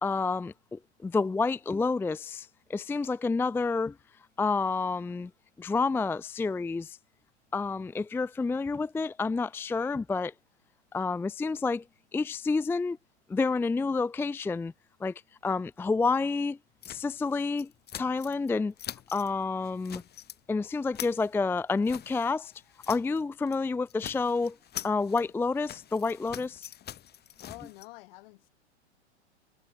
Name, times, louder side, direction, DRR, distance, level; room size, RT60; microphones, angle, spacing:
voice 1, 0.0-4.0 4.4-5.3 5.6-7.0 7.5-10.3 10.9-11.8 12.1-13.0 13.3-14.7 15.0-15.1 15.4-16.6 16.9-17.7 17.9-18.7 19.1-20.0 20.5-22.5 22.9-24.6 24.8-26.7, left 4 dB, 5° left, 0.6 m, -29 dB
sound 1, 16.8-18.5 18.8-19.3 19.6-20.4 20.7-23.2 23.5-23.6 23.9-27.9, left 11 dB, 30° left, 4.7 m, -44 dB
voice 2, 27.4-28.5, left 22 dB, 55° left, 4.7 m, -48 dB
hypercardioid pair, 110°, 34 cm